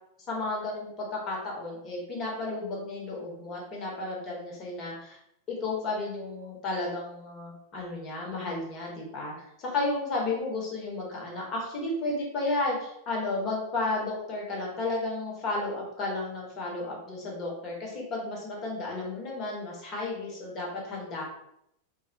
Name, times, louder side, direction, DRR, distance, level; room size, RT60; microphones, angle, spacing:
voice 1, 0.3-5.2 5.5-21.2, left 2 dB, 30° left, -2 dB, 0.9 m, -33 dB
2.2 x 2.1 x 2.6 m, 0.77 s
figure-of-eight pair, 90°, 0 cm